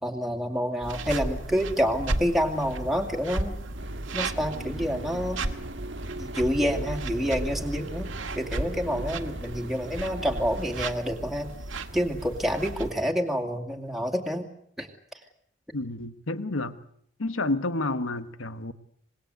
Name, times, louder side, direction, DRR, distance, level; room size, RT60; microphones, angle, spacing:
voice 1, 0.0-3.5 4.1-5.4 6.2-8.1 8.4-11.5 11.9-14.5 14.8-14.9, equal, ahead, 2.4 m, -28 dB
sound 1, 0.8-12.9, right 2 dB, 80° right, 1.9 m, -34 dB
sound 2, 3.8-10.9, right 1 dB, 60° right, 1.9 m, -41 dB
voice 2, 15.7-16.8 17.2-18.7, left 2 dB, 90° left, 1.4 m, -30 dB
26.0 x 21.0 x 8.0 m
head